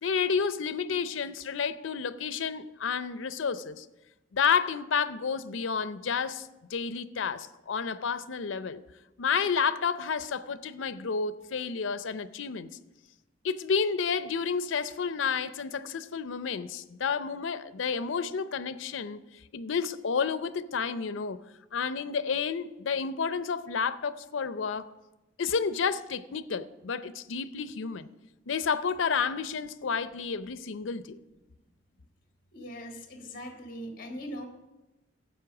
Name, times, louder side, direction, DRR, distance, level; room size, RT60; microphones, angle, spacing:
voice 1, 0.0-3.9 4.3-8.8 9.2-12.7 13.4-19.2 19.5-21.4 21.7-24.9 25.4-28.1 28.5-31.2, left 6 dB, 90° left, 0.5 m, -30 dB
voice 2, 32.5-34.5, equal, 50° left, 1.5 m, -40 dB
12.5 x 8.2 x 6.0 m
head